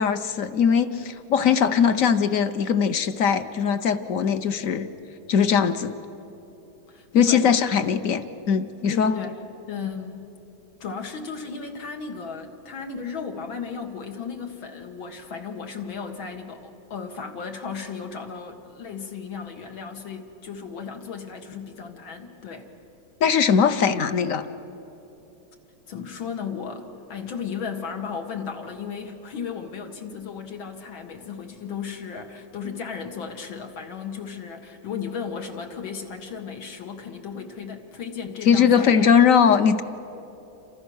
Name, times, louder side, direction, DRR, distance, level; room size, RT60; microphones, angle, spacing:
voice 1, 0.0-4.9 5.3-5.9 7.1-9.2 23.2-24.5 38.5-39.8, left 7 dB, 55° left, 11 dB, 1.0 m, -20 dB
voice 2, 6.9-7.5 8.9-9.4 9.7-10.3 10.8-22.7 25.9-39.1, left 6 dB, 85° left, 4 dB, 2.6 m, -35 dB
28.5 x 26.0 x 6.4 m, 3.0 s
omnidirectional pair, 2.1 m